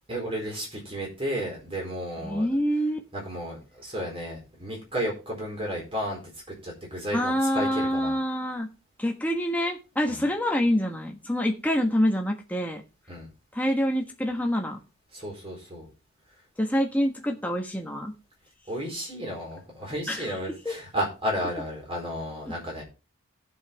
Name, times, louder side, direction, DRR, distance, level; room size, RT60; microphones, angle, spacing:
voice 1, 0.1-2.5 3.1-6.2 6.5-8.2 10.1-10.2 13.1-13.3 15.1-15.9 18.7-22.8, equal, 25° right, -1 dB, 4.3 m, -33 dB
voice 2, 2.2-3.0 7.1-8.7 9.0-12.8 13.5-14.8 16.6-18.1 20.1-20.3 20.6-20.7, equal, 5° left, 1 dB, 1.4 m, -26 dB
17.0 x 5.8 x 3.4 m, 0.30 s
head